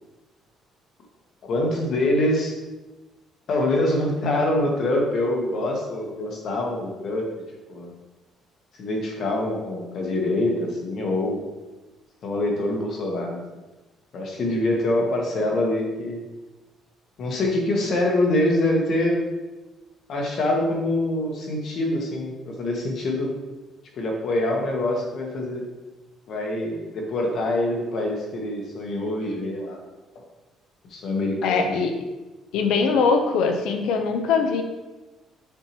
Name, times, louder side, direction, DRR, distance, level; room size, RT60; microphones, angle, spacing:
voice 1, 1.4-2.5 3.5-7.2 7.7-7.9 8.8-11.4 12.2-13.4 14.1-16.2 17.2-19.2 20.1-23.3 24.0-25.6 26.3-29.8 30.9-31.7, left 1 dB, 45° left, 0 dB, 1.2 m, -25 dB
voice 2, 31.4-31.9 32.5-34.6, left 5 dB, 75° left, 5 dB, 0.8 m, -22 dB
7.0 x 4.5 x 3.0 m, 1.1 s
cardioid pair, 180°, 0 cm